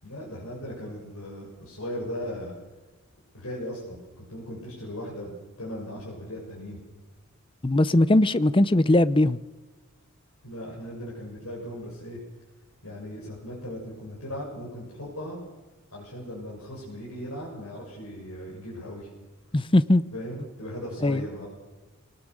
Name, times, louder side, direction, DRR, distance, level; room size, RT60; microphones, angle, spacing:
voice 1, 0.0-2.5 3.3-5.3 5.6-6.8 10.4-12.2 12.8-15.4 15.9-19.1 20.1-21.5, equal, 80° left, 7.0 m, -37 dB
voice 2, 7.6-9.4 19.5-20.0 21.0-21.2, left 1 dB, 25° left, 0.6 m, -20 dB
25.0 x 19.0 x 6.5 m
head